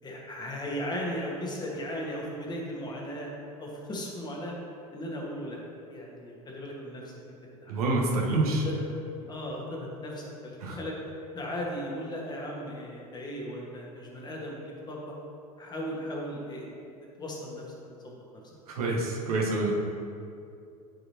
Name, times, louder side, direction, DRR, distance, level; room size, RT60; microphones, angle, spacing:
voice 1, 0.0-3.3 3.6-4.5 4.9-5.6 5.9-7.7 8.6-8.8 9.3-11.0 11.3-15.1 15.6-16.7 17.2-17.6 18.0-18.1, equal, 20° left, -2 dB, 1.7 m, -37 dB
voice 2, 7.7-8.7 10.6-10.8 18.7-19.7, right 2 dB, 65° right, -1 dB, 1.3 m, -27 dB
12.0 x 4.8 x 3.0 m, 2.5 s
figure-of-eight pair, 80°, 21 cm